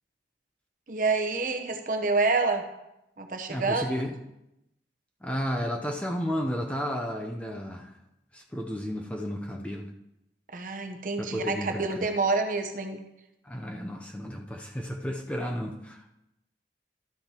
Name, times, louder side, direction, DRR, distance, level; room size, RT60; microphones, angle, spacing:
voice 1, 0.9-2.6 3.2-3.8 10.5-13.0, right 3 dB, 45° right, 5 dB, 0.9 m, -27 dB
voice 2, 3.5-4.2 5.2-7.9 8.3-9.9 11.2-12.1 13.4-16.0, equal, 5° left, 1 dB, 0.6 m, -33 dB
12.5 x 8.5 x 2.9 m, 0.87 s
head